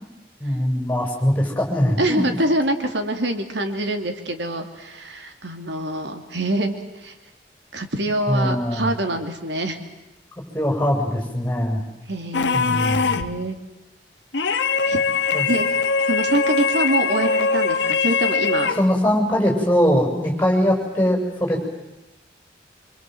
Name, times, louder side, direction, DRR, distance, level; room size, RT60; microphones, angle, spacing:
voice 1, 0.4-2.3 8.3-8.9 10.5-11.8 12.5-13.2 15.3-15.5 18.6-21.7, equal, 10° left, 0 dB, 7.2 m, -21 dB
voice 2, 2.0-7.1 7.7-9.8 12.1-13.6 14.9-15.0 15.5-15.7 16.1-18.7, right 1 dB, 85° right, 6 dB, 2.8 m, -25 dB
sound 1, 12.3-13.4 14.3-18.9, left 5 dB, 85° left, 1.5 m, -22 dB
26.5 x 26.0 x 7.9 m, 0.99 s
head